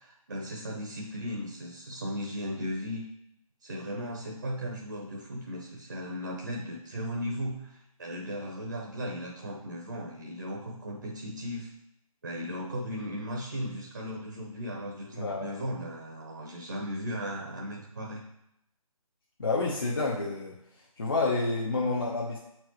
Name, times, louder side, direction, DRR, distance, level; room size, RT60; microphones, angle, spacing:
voice 1, 0.0-3.0 3.6-11.7 12.2-18.2, equal, 35° right, -1 dB, 0.9 m, -36 dB
voice 2, 15.1-15.6 19.4-20.6 21.0-22.4, left 3 dB, 40° left, -5 dB, 0.9 m, -29 dB
7.6 x 4.5 x 3.1 m, 0.80 s
figure-of-eight pair, 170°, 19 cm